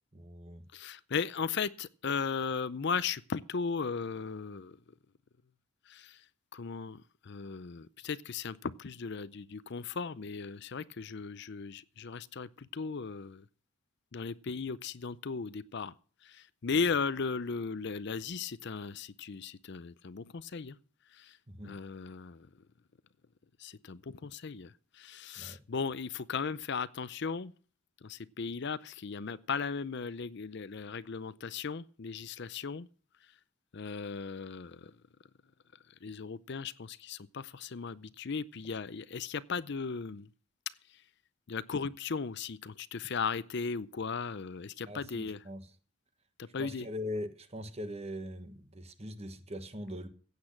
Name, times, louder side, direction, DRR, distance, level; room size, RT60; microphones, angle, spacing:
voice 1, 0.1-0.6 21.5-21.8 25.4-25.6 44.9-45.7 46.6-50.1, left 1 dB, 30° right, 1.3 m, -41 dB
voice 2, 0.7-4.8 5.9-6.2 6.5-13.4 14.1-15.9 16.2-20.8 21.1-21.4 21.6-22.5 23.6-27.5 28.0-32.9 33.7-34.9 36.0-40.3 40.9-41.0 41.5-45.4 46.4-46.9, left 5 dB, 50° left, 0.5 m, -37 dB
16.0 x 8.5 x 5.9 m
head